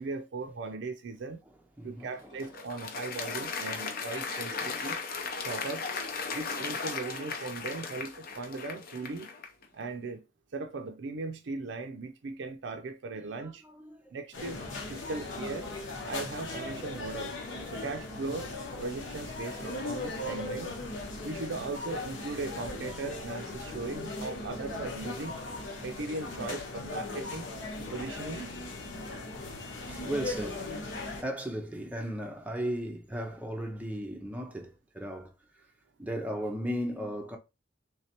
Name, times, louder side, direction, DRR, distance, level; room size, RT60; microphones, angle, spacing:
voice 1, 0.0-1.4 1.8-5.0 5.4-5.9 6.3-9.3 9.7-10.2 10.5-13.6 14.1-14.6 14.9-15.7 16.0-17.4 17.7-18.5 18.8-20.8 21.2-25.4 25.8-27.5 27.9-28.6, right 3 dB, 65° right, 0.4 m, -38 dB
voice 2, 1.8-2.5 3.4-3.8 4.4-4.5 13.2-14.1 17.5-17.9 18.3-18.4 22.7-23.1 29.9-30.7 31.2-35.7 36.0-37.4, equal, 10° right, 0.5 m, -37 dB
Applause, 2.0-9.6, left 5 dB, 50° left, 0.6 m, -37 dB
sound 1, 14.3-31.2, left 2 dB, 85° left, 1.1 m, -38 dB
3.2 x 3.2 x 2.8 m
head